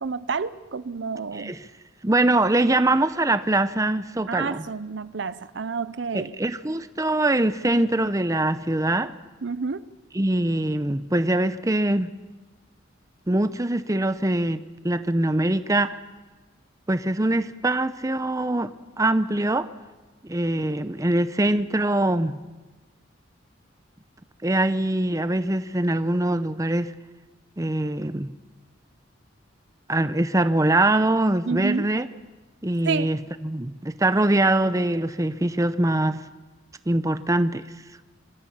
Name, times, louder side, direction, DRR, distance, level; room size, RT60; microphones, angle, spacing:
voice 1, 0.0-1.5 4.3-6.3 9.4-9.9 31.5-31.9 32.8-33.1, right 4 dB, 65° right, 0.6 m, -29 dB
voice 2, 1.3-1.7 2.0-4.7 6.1-9.1 10.1-12.1 13.3-16.0 16.9-18.7 19.0-19.7 20.2-22.4 24.4-26.9 27.6-28.3 29.9-32.1 32.6-36.2 36.9-37.7, right 1 dB, 15° right, 0.7 m, -23 dB
25.5 x 14.5 x 8.6 m
head